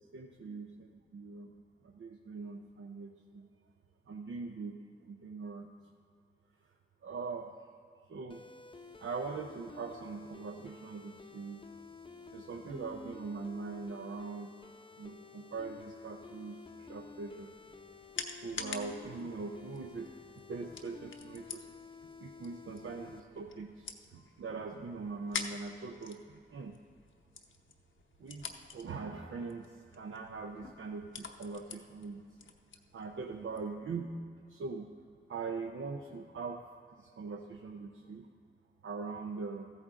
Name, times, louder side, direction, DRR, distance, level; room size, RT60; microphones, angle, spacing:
voice 1, 0.1-3.5 4.1-4.8 5.1-5.7 7.0-7.5 8.1-8.4 9.0-11.6 12.3-14.5 15.0-17.5 18.4-20.1 20.4-21.6 22.2-26.2 26.5-26.7 28.2-32.2 32.9-34.1 34.5-34.9 35.3-36.7 37.0-38.3 38.8-39.7, right 4 dB, 80° right, 2 dB, 0.6 m, -42 dB
sound 1, 8.3-23.2, left 4 dB, 25° left, 0.6 m, -52 dB
sound 2, 17.3-33.7, left 5 dB, 75° left, 0.8 m, -48 dB
14.0 x 8.7 x 3.7 m, 2.2 s
cardioid pair, 55°, 20 cm